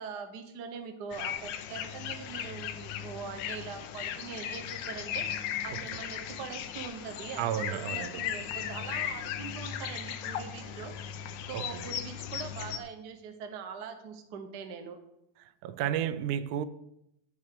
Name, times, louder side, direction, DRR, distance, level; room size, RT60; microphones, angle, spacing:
voice 1, 0.0-15.0, right 6 dB, 55° right, 1.1 m, -42 dB
sound 1, 1.1-12.8, left 9 dB, 80° left, 2.1 m, -37 dB
voice 2, 7.4-8.2 11.5-11.8 15.6-16.7, right 10 dB, 90° right, 2.1 m, -32 dB
12.5 x 5.5 x 6.7 m
omnidirectional pair, 3.4 m